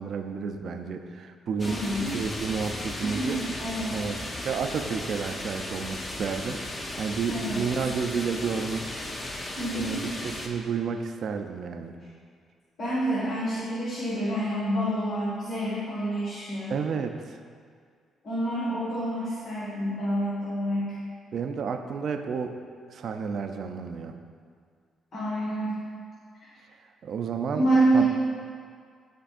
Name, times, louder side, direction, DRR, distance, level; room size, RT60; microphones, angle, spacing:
voice 1, 0.0-3.4 3.9-4.2 4.4-9.0 9.7-11.9 16.7-17.2 21.3-22.6 22.9-24.1 27.0-27.7 27.9-28.0, right 6 dB, 60° right, 6 dB, 0.5 m, -31 dB
voice 2, 1.6-2.1 3.0-4.1 7.3-7.7 9.6-10.1 12.8-16.8 18.2-21.0 25.1-25.8 26.4-26.5 27.5-28.0, right 1 dB, 55° left, -8 dB, 1.7 m, -28 dB
sound 1, 1.6-10.5, left 1 dB, 25° left, 0.8 m, -36 dB
11.5 x 4.5 x 2.5 m, 2.1 s
cardioid pair, 90°, 0 cm